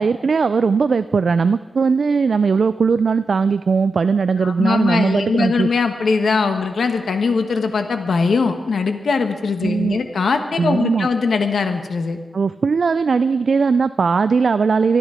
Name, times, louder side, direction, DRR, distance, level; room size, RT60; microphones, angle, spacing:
voice 1, 0.0-5.7 9.6-10.0 10.6-11.1 12.3-15.0, right 5 dB, 70° right, 13 dB, 0.4 m, -18 dB
voice 2, 4.4-12.2, left 4 dB, 85° left, 7 dB, 1.2 m, -20 dB
25.5 x 10.0 x 5.0 m, 1.3 s
wide cardioid pair, 75°, 0 cm